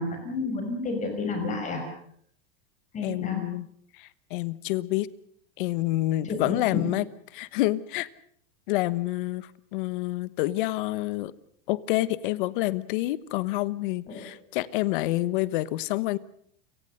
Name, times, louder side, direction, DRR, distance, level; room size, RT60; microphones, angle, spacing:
voice 1, 0.0-1.8 2.9-3.4 6.2-6.9 14.1-14.3, left 3 dB, 25° left, 5 dB, 5.7 m, -30 dB
voice 2, 3.0-3.7 4.0-5.1 5.6-7.0 7.3-8.1 8.7-11.3 11.7-16.2, left 17 dB, 60° left, 17 dB, 1.3 m, -28 dB
30.0 x 18.5 x 6.6 m, 0.64 s
supercardioid pair, 145°, 30 cm